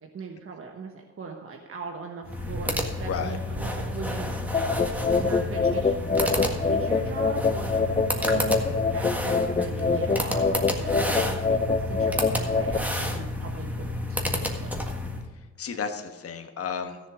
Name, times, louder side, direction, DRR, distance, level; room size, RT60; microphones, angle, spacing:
voice 1, 0.0-4.4 5.1-14.7, right 5 dB, 45° right, 2 dB, 1.2 m, -39 dB
sound 1, 2.2-15.2, left 1 dB, 5° right, 1.6 m, -30 dB
voice 2, 3.0-3.4 8.6-8.8 12.2-12.4 15.6-17.0, left 6 dB, 50° left, 5 dB, 1.3 m, -33 dB
sound 2, 4.5-12.8, left 4 dB, 20° left, 0.5 m, -25 dB
14.0 x 7.0 x 5.0 m, 1.3 s
cardioid pair, 95°, 30 cm